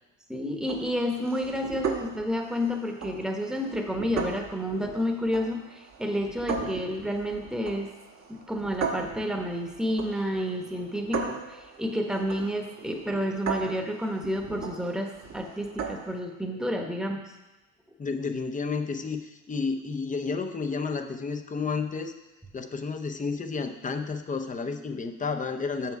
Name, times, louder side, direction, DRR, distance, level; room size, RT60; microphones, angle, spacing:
voice 1, 0.3-7.9 8.5-17.2, equal, ahead, 2 dB, 1.1 m, -30 dB
sound 1, 0.6-16.2, right 5 dB, 45° right, 1.3 m, -38 dB
voice 2, 18.0-22.1 22.5-26.0, left 4 dB, 20° left, 7 dB, 0.7 m, -31 dB
6.9 x 5.8 x 4.7 m, 1.1 s
cardioid pair, 85°, 36 cm